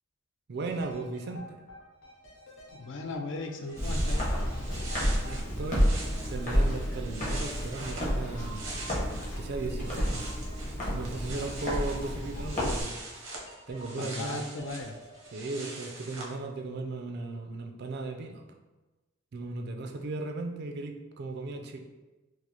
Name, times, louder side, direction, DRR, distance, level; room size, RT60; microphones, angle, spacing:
voice 1, 0.5-1.6 5.0-5.9 6.3-8.7 9.4-10.3 10.9-12.9 13.7-14.5 15.3-18.5 19.3-21.8, right 3 dB, 55° right, 4 dB, 0.4 m, -36 dB
sound 1, 0.7-16.6 16.9-17.0, equal, 80° left, 1.0 m, -51 dB
voice 2, 2.7-4.3 14.0-15.0, left 3 dB, 65° left, 4 dB, 0.4 m, -37 dB
sound 2, 3.3-3.4 3.6-9.4 9.7-16.3, right 2 dB, 85° right, 0.7 m, -43 dB
Walk footsteps, 3.8-12.8, equal, 40° left, 1.0 m, -30 dB
4.7 x 2.0 x 2.8 m, 1.1 s
head